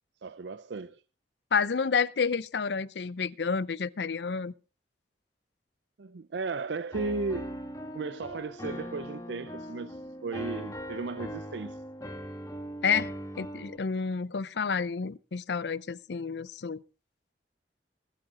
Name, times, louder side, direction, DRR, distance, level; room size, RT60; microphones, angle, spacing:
voice 1, 0.2-1.0 6.0-7.6 7.9-11.8, right 3 dB, 80° right, 0.5 m, -35 dB
voice 2, 1.5-4.5 12.8-13.1 13.4-16.8, left 5 dB, 70° left, 0.6 m, -29 dB
Piano, 6.9-13.8, equal, 20° left, 1.5 m, -40 dB
20.5 x 8.9 x 3.7 m
head